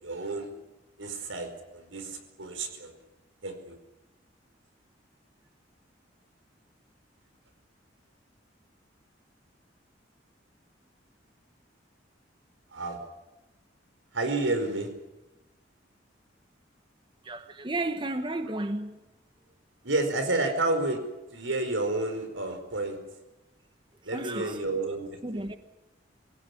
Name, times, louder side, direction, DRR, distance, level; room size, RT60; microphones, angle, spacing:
voice 1, 0.0-0.5 1.0-2.9 3.4-3.8 12.7-13.0 14.1-14.9 19.8-21.0 21.3-23.0 24.0-25.5, right 2 dB, 90° right, 4.8 m, -30 dB
voice 2, 17.2-19.0 20.4-20.5 24.1-24.6 25.2-25.6, right 2 dB, 25° right, 1.1 m, -33 dB
24.5 x 17.0 x 9.9 m
head